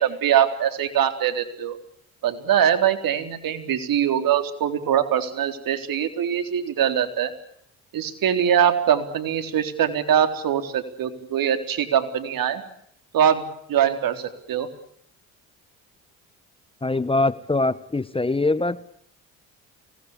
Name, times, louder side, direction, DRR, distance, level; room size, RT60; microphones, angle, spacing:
voice 1, 0.0-1.8 2.2-7.3 7.9-12.6 13.1-13.4 13.7-14.7, right 9 dB, 60° right, 7 dB, 4.0 m, -22 dB
voice 2, 16.8-18.8, left 2 dB, 15° left, 16 dB, 1.2 m, -23 dB
25.0 x 19.5 x 8.3 m, 0.69 s
supercardioid pair, 70°, 38 cm